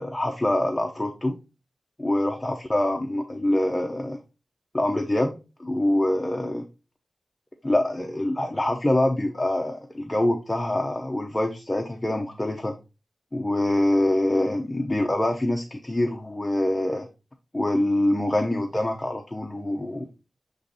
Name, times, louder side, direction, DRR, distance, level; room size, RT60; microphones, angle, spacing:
voice 1, 0.0-1.4 2.0-4.2 4.7-6.6 7.6-12.7 13.3-17.1 17.5-20.1, left 1 dB, 15° left, 2 dB, 0.7 m, -25 dB
7.7 x 3.1 x 4.0 m, 0.30 s
wide cardioid pair, 120°, 0 cm